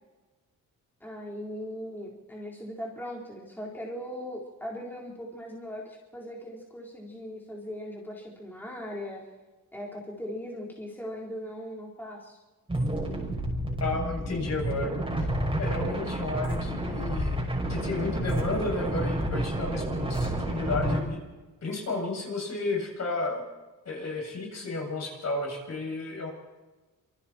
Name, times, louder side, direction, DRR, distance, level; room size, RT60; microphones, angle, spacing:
voice 1, 1.0-9.2 9.7-12.4, equal, 5° left, -3 dB, 4.2 m, -39 dB
sound 1, 12.7-21.0, right 1 dB, 15° right, 5.8 m, -30 dB
voice 2, 13.8-15.0 15.6-17.4 17.7-21.2 21.6-23.5 23.8-26.3, left 3 dB, 50° left, 0 dB, 7.7 m, -32 dB
26.5 x 25.0 x 4.5 m, 1.2 s
wide cardioid pair, 130°, 34 cm